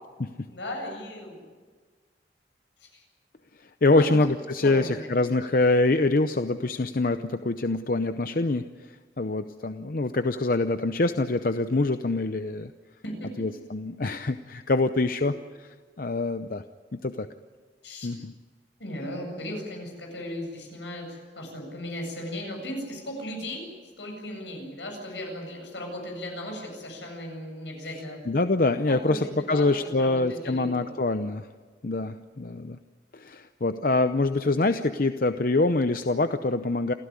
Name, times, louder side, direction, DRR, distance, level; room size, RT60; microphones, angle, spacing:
voice 1, 0.5-1.5 2.8-2.9 3.9-4.1 4.6-5.1 13.0-13.5 17.8-18.1 18.8-23.7 24.0-28.2 28.9-31.0, left 1 dB, 80° left, 2 dB, 8.0 m, -36 dB
voice 2, 3.8-12.7 13.4-15.3 16.0-16.6 16.9-17.3 18.0-18.3 28.3-31.5 31.8-32.8 33.1-36.9, left 2 dB, 50° left, 9 dB, 0.7 m, -25 dB
28.0 x 15.5 x 9.8 m, 1.5 s
head